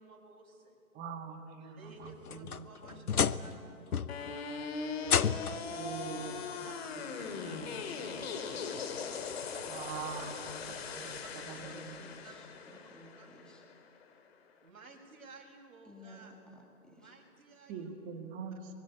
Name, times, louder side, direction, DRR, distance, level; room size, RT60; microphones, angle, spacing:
voice 1, 0.0-0.8 1.6-5.1 6.5-9.5 10.6-11.6 12.2-12.9 13.2-13.3 14.6-16.3 16.9-17.9, right 3 dB, 65° right, 1 dB, 6.7 m, -55 dB
voice 2, 0.9-3.6 5.8-6.4 7.3-7.7 9.7-12.0 17.7-18.7, right 6 dB, 20° right, 6 dB, 1.9 m, -44 dB
sound 1, 2.0-3.6 3.9-4.4 5.0-5.7 6.9-7.0 7.6-7.7 9.3-9.4, left 7 dB, 75° left, 0.9 m, -31 dB
sound 2, 4.1-14.1, left 5 dB, 40° left, 2.5 m, -40 dB
voice 3, 5.1-6.5 11.6-13.6 15.8-17.1, left 1 dB, ahead, 0 dB, 2.0 m, -54 dB
23.5 x 21.5 x 9.7 m, 2.4 s
figure-of-eight pair, 135°, 45 cm